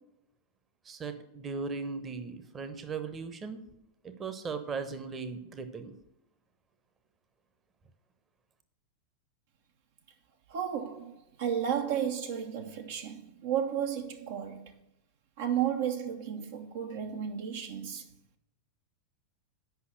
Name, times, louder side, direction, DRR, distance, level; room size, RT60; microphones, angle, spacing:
voice 1, 0.8-3.6 4.0-5.9, right 4 dB, 20° right, 0.9 m, -38 dB
voice 2, 10.5-14.7 15.4-18.1, right 9 dB, 55° right, 0.8 m, -33 dB
8.1 x 5.6 x 6.6 m
figure-of-eight pair, 90°, 0 cm